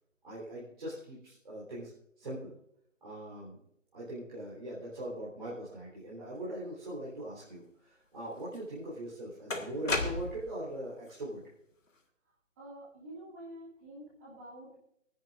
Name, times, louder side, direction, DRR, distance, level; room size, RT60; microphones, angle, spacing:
voice 1, 0.2-1.9 2.2-2.5 3.0-3.6 3.9-11.5, right 1 dB, 40° right, -8 dB, 3.7 m, -41 dB
sound 1, 8.5-8.6 9.5-10.6, left 3 dB, 75° left, 1.7 m, -33 dB
voice 2, 12.6-14.8, right 1 dB, 10° right, -7 dB, 2.3 m, -48 dB
27.5 x 10.5 x 2.5 m, 0.74 s
figure-of-eight pair, 165°, 38 cm